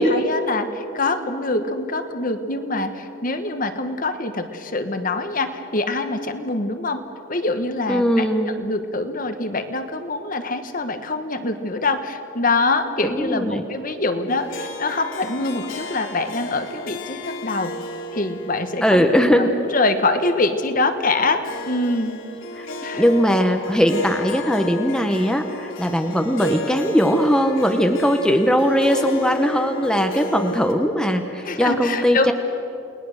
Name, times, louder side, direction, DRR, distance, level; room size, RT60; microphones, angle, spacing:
voice 1, 0.0-7.0 7.3-17.7 18.1-22.1 22.8-23.1 31.4-32.3, left 2 dB, 40° left, 8 dB, 1.2 m, -24 dB
voice 2, 7.9-8.6 13.0-13.6 18.8-19.5 22.6-22.7 23.0-32.3, equal, 5° left, 5 dB, 1.0 m, -19 dB
Harp, 14.3-30.7, left 2 dB, 75° left, 2.6 m, -34 dB
30.0 x 19.5 x 6.5 m, 2.9 s
head